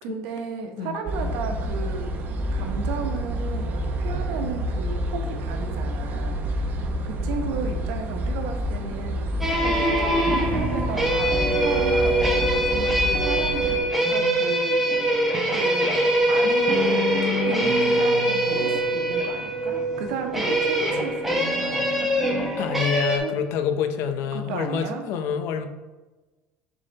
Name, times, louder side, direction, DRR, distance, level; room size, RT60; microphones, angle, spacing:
voice 1, 0.0-2.2 2.5-9.3 9.6-14.8 15.5-16.0 16.3-22.1 23.2-23.3 24.3-25.0, right 5 dB, 80° right, 4 dB, 1.0 m, -34 dB
sound 1, 1.1-13.8, equal, 40° right, 0.7 m, -28 dB
sound 2, 9.4-23.2, right 1 dB, 5° right, 1.1 m, -23 dB
voice 2, 22.6-25.7, left 7 dB, 65° left, 8 dB, 0.6 m, -27 dB
6.7 x 3.7 x 4.1 m, 1.2 s
cardioid pair, 140°, 5 cm